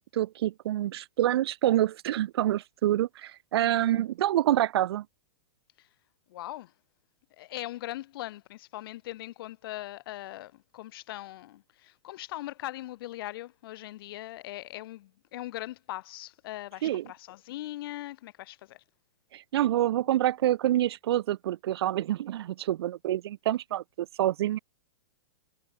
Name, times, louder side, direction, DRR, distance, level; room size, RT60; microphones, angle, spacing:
voice 1, 0.0-5.0 16.8-17.0 19.3-24.6, right 13 dB, 70° right, 0.4 m, -27 dB
voice 2, 3.6-4.0 5.8-5.9 6.3-6.7 7.3-18.8, left 16 dB, 60° left, 3.1 m, -40 dB
hypercardioid pair, 130°, 14 cm